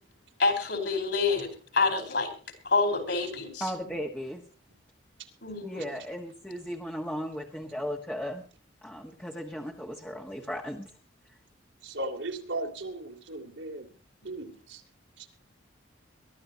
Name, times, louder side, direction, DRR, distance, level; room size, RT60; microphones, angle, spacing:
voice 1, 0.4-2.3 2.6-3.6 5.4-5.8, left 3 dB, 60° left, 4.8 m, -27 dB
voice 2, 3.6-4.4 5.6-8.4 8.8-10.9, equal, 5° left, 1.4 m, -36 dB
voice 3, 11.8-13.9 14.2-14.8 15.2-15.3, right 2 dB, 75° right, 3.2 m, -37 dB
22.5 x 13.5 x 2.9 m
head